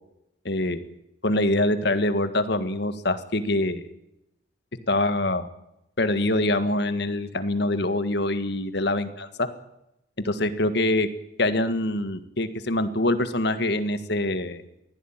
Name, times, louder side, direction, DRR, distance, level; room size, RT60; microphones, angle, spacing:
voice 1, 0.5-0.8 1.2-3.8 4.9-5.5 6.0-9.5 10.2-11.1 11.4-14.6, left 1 dB, 60° left, 10 dB, 1.8 m, -24 dB
23.0 x 16.0 x 9.0 m, 0.86 s
head